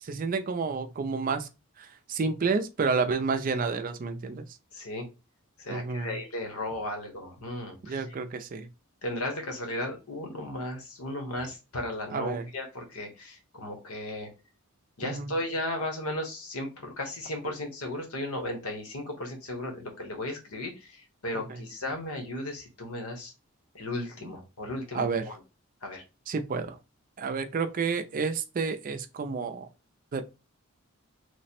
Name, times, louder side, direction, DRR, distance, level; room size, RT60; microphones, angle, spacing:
voice 1, 0.0-1.5 1.8-4.5 5.7-6.2 7.8-8.7 12.1-12.4 15.0-15.3 21.3-21.6 24.9-25.2 26.3-26.8 27.2-29.7 30.1-30.2, right 4 dB, 40° right, 0.4 m, -30 dB
voice 2, 4.7-5.1 5.6-8.0 9.0-14.3 15.0-23.3 23.7-25.4 25.8-26.0, left 1 dB, 80° left, 1.1 m, -35 dB
3.2 x 2.1 x 4.2 m
head